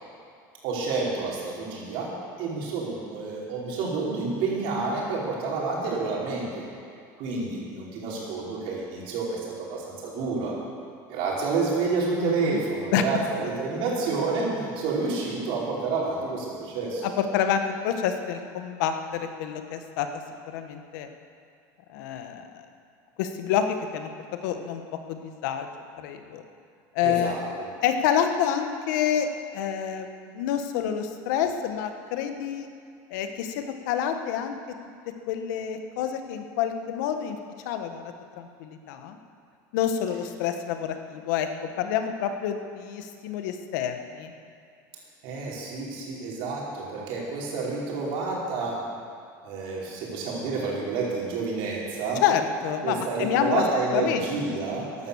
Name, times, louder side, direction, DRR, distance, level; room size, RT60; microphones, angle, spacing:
voice 1, 0.6-2.1 2.4-6.6 7.2-10.5 11.1-17.0 27.0-27.7 45.2-48.8 49.4-52.2 52.8-55.1, right 4 dB, 65° right, -4 dB, 5.2 m, -29 dB
voice 2, 12.2-12.6 12.9-13.0 17.0-20.1 20.5-21.1 21.9-22.4 23.2-24.1 24.4-24.8 25.1-25.7 26.0-26.4 26.9-27.3 27.8-29.3 29.5-32.7 33.1-34.5 35.3-37.4 37.6-39.2 39.7-41.5 41.8-44.3 52.2-53.6 53.9-54.2, left 9 dB, 85° left, 7 dB, 1.4 m, -28 dB
15.5 x 11.0 x 7.2 m, 2.4 s
supercardioid pair, 135°, 10 cm